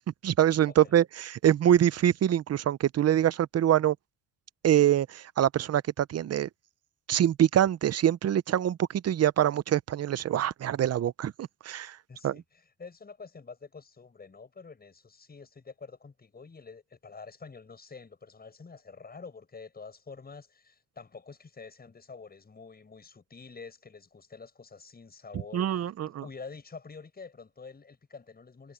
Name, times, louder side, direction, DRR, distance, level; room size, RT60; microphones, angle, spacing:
voice 1, 0.2-4.0 4.6-6.5 7.1-12.0 12.2-12.4 25.5-26.2, right 11 dB, 45° right, 0.8 m, -25 dB
voice 2, 12.1-25.9 26.2-28.7, left 4 dB, 25° left, 7.6 m, -47 dB
cardioid pair, 110°, 36 cm